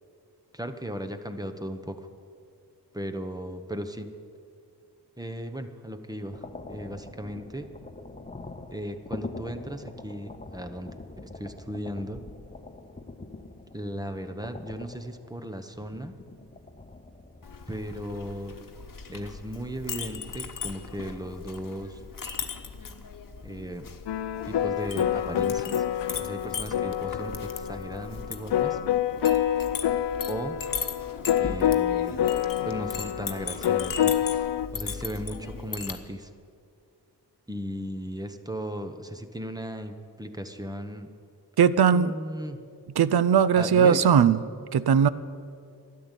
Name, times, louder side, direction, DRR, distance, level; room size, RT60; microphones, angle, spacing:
voice 1, 0.5-2.1 2.9-4.1 5.2-7.7 8.7-11.0 11.2-12.2 13.7-16.2 17.7-18.6 19.1-22.0 23.4-23.9 24.4-25.8 26.2-28.8 30.3-30.6 31.4-32.2 32.6-34.2 34.7-36.3 37.5-41.1 41.9-42.6 43.5-44.1, equal, 10° right, 7 dB, 0.9 m, -36 dB
sound 1, 6.3-20.7 21.1-21.4 22.6-23.1 24.2-25.0, left 3 dB, 20° left, 0.9 m, -45 dB
Chink clink, 17.4-36.0, left 5 dB, 55° left, 1.1 m, -38 dB
sound 2, 24.1-34.7, left 10 dB, 80° left, 0.6 m, -27 dB
voice 2, 41.6-42.1 43.0-44.4 44.7-45.1, right 7 dB, 65° right, 16 dB, 0.6 m, -19 dB
12.5 x 10.5 x 8.3 m, 2.4 s
wide cardioid pair, 70°, 41 cm